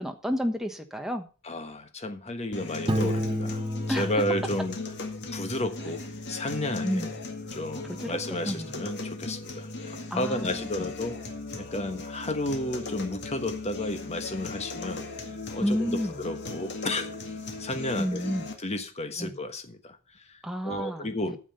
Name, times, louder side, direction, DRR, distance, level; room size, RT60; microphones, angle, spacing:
voice 1, 0.0-1.3 3.9-4.1 6.8-7.1 8.0-8.2 8.4-8.7 10.1-10.9 15.6-16.1 18.0-18.4 19.2-19.3 20.4-21.4, equal, ahead, 1.2 m, -30 dB
voice 2, 1.4-3.6 3.9-4.8 5.3-7.0 7.5-11.2 11.5-15.0 15.5-17.1 17.6-18.2 18.6-20.0 20.3-20.4 20.6-21.4, left 1 dB, 30° left, 1.3 m, -32 dB
sound 1, 2.5-18.5, left 2 dB, 50° left, 1.9 m, -38 dB
Piano, 2.9-5.6, equal, 20° right, 0.9 m, -31 dB
9.3 x 7.3 x 6.9 m
head